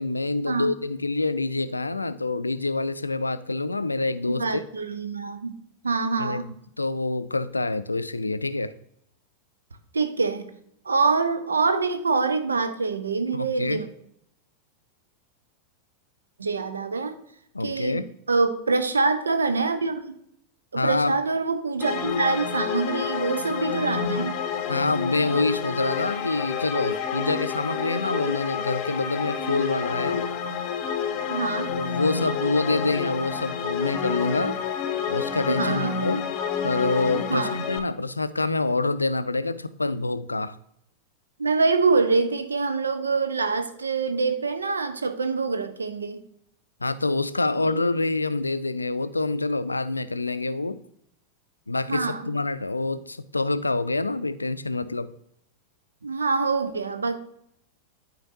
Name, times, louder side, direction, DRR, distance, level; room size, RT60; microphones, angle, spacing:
voice 1, 0.0-4.6 6.2-8.7 13.3-13.8 17.5-18.1 20.7-21.2 24.7-30.3 31.7-34.6 35.1-36.3 36.6-40.6 46.8-50.8 51.7-55.1, left 2 dB, 80° left, 13 dB, 0.4 m, -26 dB
voice 2, 4.3-5.5 5.8-6.4 9.9-10.5 10.9-13.9 16.4-17.2 17.6-18.0 18.3-20.0 20.7-24.4 31.3-31.7 35.5-35.9 37.3-37.6 41.4-46.2 47.7-47.8 51.9-52.2 56.0-57.2, right 4 dB, 75° right, 8 dB, 0.7 m, -25 dB
sound 1, 21.8-37.8, left 7 dB, 35° left, 0.8 m, -29 dB
12.0 x 4.4 x 2.7 m, 0.72 s
figure-of-eight pair, 90°, 0 cm